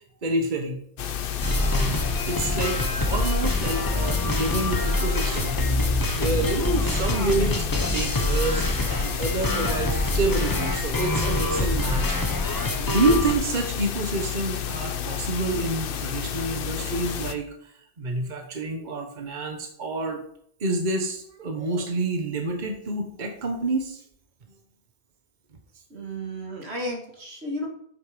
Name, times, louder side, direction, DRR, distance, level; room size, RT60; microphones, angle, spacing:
voice 1, 0.2-0.8 1.5-2.0 2.3-12.2 12.7-17.5 18.0-20.2 20.6-24.0, right 2 dB, 50° right, 4 dB, 1.3 m, -28 dB
sound 1, 1.0-17.3, left 9 dB, 65° left, 0.8 m, -31 dB
sound 2, 1.4-13.3, left 1 dB, 20° left, 1.0 m, -26 dB
voice 2, 25.9-27.7, equal, 85° right, 1 dB, 2.2 m, -33 dB
8.3 x 6.6 x 5.1 m, 0.66 s
omnidirectional pair, 1.1 m